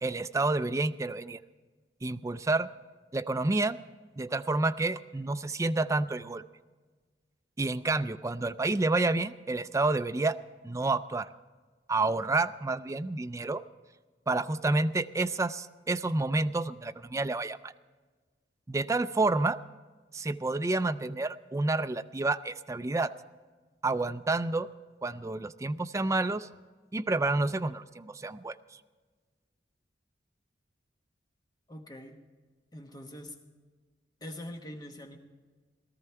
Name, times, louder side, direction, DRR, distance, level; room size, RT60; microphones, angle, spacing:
voice 1, 0.0-1.4 2.0-2.7 3.1-3.8 4.2-6.4 7.6-10.4 10.6-11.3 11.9-13.6 14.3-17.7 18.7-19.6 20.1-23.1 23.8-24.7 25.0-26.5 26.9-28.6, right 2 dB, 15° right, 11 dB, 0.4 m, -29 dB
voice 2, 31.7-32.2 32.7-33.4 34.2-35.2, left 1 dB, 20° left, 4 dB, 1.2 m, -43 dB
18.0 x 13.5 x 4.5 m, 1.4 s
head